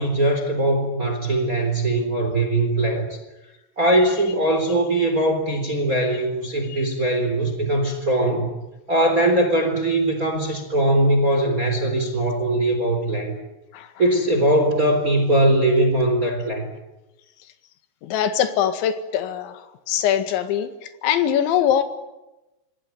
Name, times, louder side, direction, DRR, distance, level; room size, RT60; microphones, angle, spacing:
voice 1, 0.0-3.2 3.8-8.5 8.9-13.4 14.0-16.7, right 1 dB, 20° right, 6 dB, 3.5 m, -21 dB
voice 2, 18.0-21.8, left 9 dB, 70° left, 9 dB, 4.0 m, -22 dB
26.5 x 22.0 x 9.3 m, 0.99 s
omnidirectional pair, 5.9 m